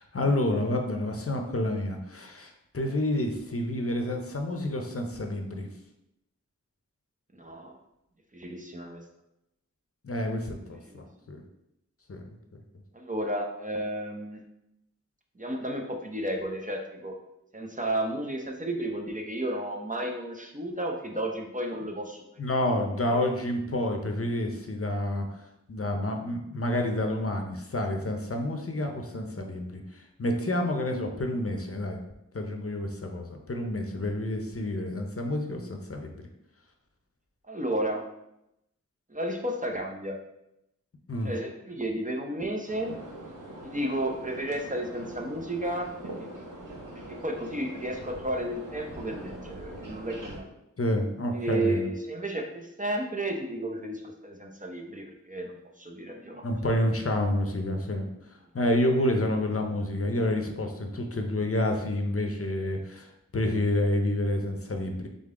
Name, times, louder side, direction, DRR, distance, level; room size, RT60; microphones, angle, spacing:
voice 1, 0.0-5.7 10.0-11.4 12.1-12.6 22.4-25.3 25.7-32.0 32.3-36.3 41.1-41.3 50.8-51.9 56.4-58.1 58.5-65.1, left 1 dB, 50° left, 3 dB, 0.7 m, -29 dB
voice 2, 7.4-7.8 8.3-9.0 10.9-11.0 12.9-14.4 15.4-17.1 17.5-22.2 22.7-22.8 23.1-23.2 37.5-38.0 39.1-40.2 41.2-42.9 43.6-45.9 46.2-46.3 47.1-50.5 51.3-56.5, right 1 dB, 25° right, 1 dB, 0.7 m, -32 dB
sound 1, 42.7-50.4, right 1 dB, 90° right, 1.0 m, -42 dB
3.8 x 3.7 x 3.7 m, 0.84 s
wide cardioid pair, 55°, 31 cm